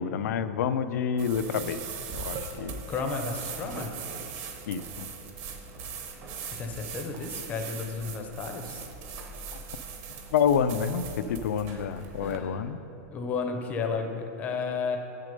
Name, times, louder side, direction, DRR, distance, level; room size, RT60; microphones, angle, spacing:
voice 1, 0.0-1.8 2.1-2.8 4.7-5.1 10.3-12.8, left 7 dB, 80° left, 12 dB, 0.5 m, -28 dB
sound 1, 1.2-12.4, right 5 dB, 30° right, 0.7 m, -40 dB
voice 2, 2.9-3.9 6.4-8.8 11.7-11.9 12.2-12.6 13.1-15.0, left 4 dB, 15° left, 4 dB, 0.6 m, -33 dB
8.3 x 6.5 x 5.2 m, 2.8 s
supercardioid pair, 170°, 9 cm